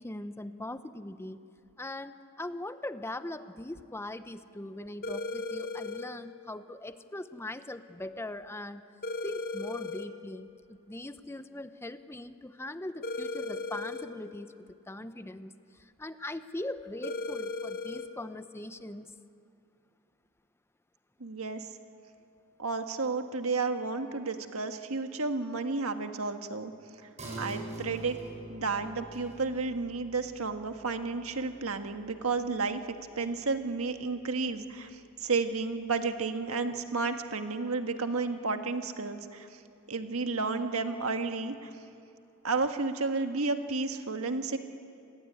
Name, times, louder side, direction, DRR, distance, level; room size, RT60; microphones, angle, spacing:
voice 1, 0.0-1.4 1.8-8.8 9.2-15.5 15.8-19.1, left 1 dB, 10° left, 11 dB, 0.7 m, -41 dB
sound 1, 5.0-6.1 9.0-10.1 13.0-14.1 17.0-18.1, left 2 dB, 45° left, 1.8 m, -36 dB
voice 2, 21.2-21.7 22.6-26.7 27.4-28.2 28.5-39.5 39.9-41.7 42.4-44.6, right 4 dB, 75° right, 6 dB, 1.7 m, -32 dB
sound 2, 27.2-34.2 34.6-34.7, right 1 dB, 35° right, 7.1 m, -46 dB
28.0 x 20.5 x 9.5 m, 2.5 s
head